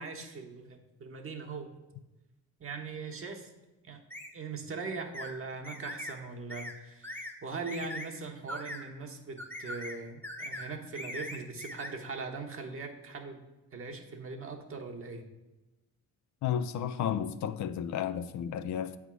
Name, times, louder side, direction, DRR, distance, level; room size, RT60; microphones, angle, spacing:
voice 1, 0.0-1.8 2.6-3.5 3.8-4.0 4.3-13.4 13.7-15.2, right 4 dB, 45° right, 1.1 m, -40 dB
sound 1, 4.1-4.3 5.1-5.3 5.6-6.2 6.5-6.8 7.0-7.3 7.7-8.1 8.5-8.8 9.4-10.0 10.2-10.7 10.9-11.9, left 1 dB, 5° left, 1.0 m, -40 dB
voice 2, 16.4-19.0, left 9 dB, 70° left, 0.6 m, -32 dB
8.0 x 3.6 x 6.1 m
cardioid pair, 90°, 30 cm